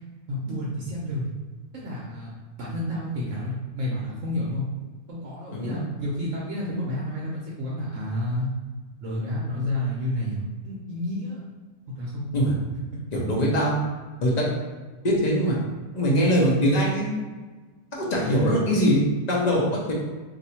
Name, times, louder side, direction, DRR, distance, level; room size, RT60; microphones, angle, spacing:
voice 1, 0.3-1.3 1.7-2.3 2.6-4.6 5.1-8.5 9.0-11.4 12.0-12.3, left 1 dB, 65° right, -5 dB, 1.0 m, -30 dB
voice 2, 5.5-5.8 12.3-12.5 13.1-13.8 14.2-14.5 15.0-15.6 15.9-17.1 18.0-19.9, equal, 40° left, -3 dB, 0.7 m, -22 dB
2.7 x 2.6 x 4.2 m, 1.3 s
omnidirectional pair, 1.5 m